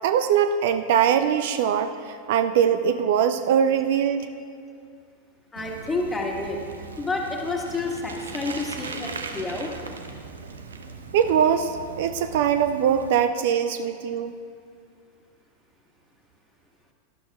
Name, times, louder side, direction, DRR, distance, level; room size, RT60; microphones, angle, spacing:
voice 1, 0.0-4.3 11.1-14.4, right 8 dB, 50° right, 10 dB, 0.5 m, -22 dB
voice 2, 5.5-6.6 7.0-9.7, left 3 dB, 10° left, 0 dB, 1.6 m, -29 dB
Bicycle, 5.6-13.1, right 4 dB, 70° right, 0.9 m, -39 dB
18.5 x 12.0 x 2.4 m, 2.2 s
figure-of-eight pair, 90°, 0 cm